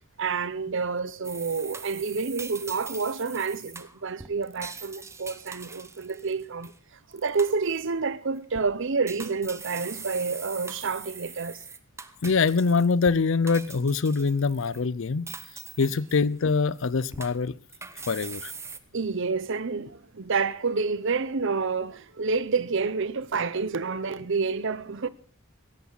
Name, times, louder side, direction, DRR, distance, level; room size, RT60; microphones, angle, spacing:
voice 1, 0.2-6.7 7.1-11.6 18.9-25.1, right 4 dB, 60° right, 0.8 m, -29 dB
sound 1, 1.2-6.8 7.1-7.9 8.4-8.7 9.1-13.2 13.5-14.8 15.3-16.5 16.8-18.8, right 4 dB, 15° right, 0.9 m, -42 dB
voice 2, 12.2-15.3 15.8-17.6 18.1-18.5, left 4 dB, 65° left, 0.6 m, -24 dB
17.0 x 14.0 x 4.0 m
head